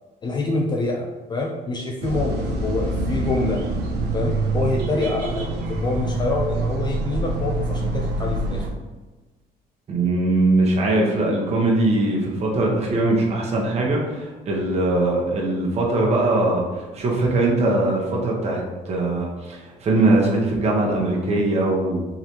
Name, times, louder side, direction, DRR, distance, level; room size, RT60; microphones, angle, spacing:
voice 1, 0.2-3.6 4.1-8.6, left 3 dB, 25° left, -1 dB, 0.4 m, -26 dB
sound 1, 2.0-8.7, right 2 dB, 80° right, 0.7 m, -25 dB
voice 2, 9.9-22.1, right 2 dB, 40° right, -2 dB, 0.9 m, -21 dB
3.8 x 3.1 x 2.8 m, 1.2 s
cardioid pair, 110°, 17 cm